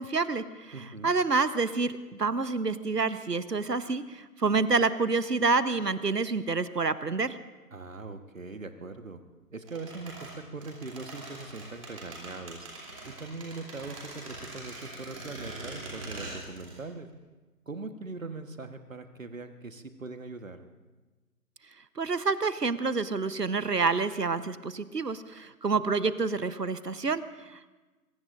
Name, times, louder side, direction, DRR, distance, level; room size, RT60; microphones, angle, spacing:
voice 1, 0.0-7.4 22.0-27.7, right 4 dB, 90° right, 14 dB, 1.1 m, -28 dB
voice 2, 0.7-1.1 7.7-9.2 9.5-12.7 13.0-17.1 17.7-20.6, right 3 dB, 55° right, 8 dB, 1.4 m, -41 dB
sound 1, 9.7-16.8 17.1-17.2, right 2 dB, 20° right, 3.1 m, -42 dB
24.0 x 22.5 x 2.6 m, 1.2 s
figure-of-eight pair, 160°, 47 cm